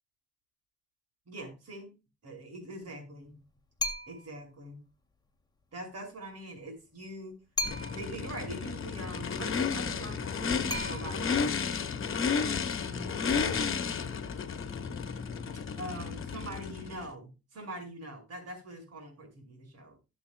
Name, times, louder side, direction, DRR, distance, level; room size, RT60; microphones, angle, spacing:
voice 1, 1.3-1.9 2.2-3.4 4.1-4.8 5.7-7.4 7.9-11.6 12.2-13.6 15.7-20.0, right 1 dB, 60° right, 4 dB, 5.6 m, -43 dB
sound 1, 3.8-4.4 7.6-8.3 10.7-11.5, left 2 dB, 15° left, 1.7 m, -35 dB
Race car auto racing / Idling / Accelerating revving vroom, 7.6-17.1, left 6 dB, 45° left, 1.4 m, -32 dB
18.0 x 7.0 x 2.3 m, 0.28 s
cardioid pair, 105°, 29 cm